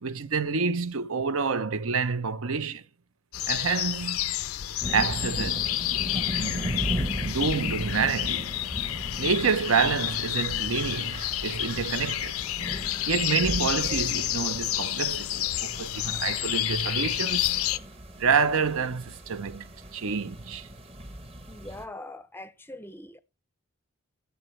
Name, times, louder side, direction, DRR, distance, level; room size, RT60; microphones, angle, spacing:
voice 1, 0.0-2.8 3.5-4.3 4.9-5.7 6.4-8.5 9.2-12.4 13.1-17.6 18.2-20.7, right 5 dB, 75° right, 0.7 m, -28 dB
sound 1, 3.3-17.8, left 13 dB, 80° left, 0.5 m, -30 dB
sound 2, 4.8-21.8, equal, 25° right, 0.9 m, -37 dB
voice 2, 21.5-23.2, left 1 dB, 10° left, 0.6 m, -42 dB
16.5 x 7.0 x 3.2 m
head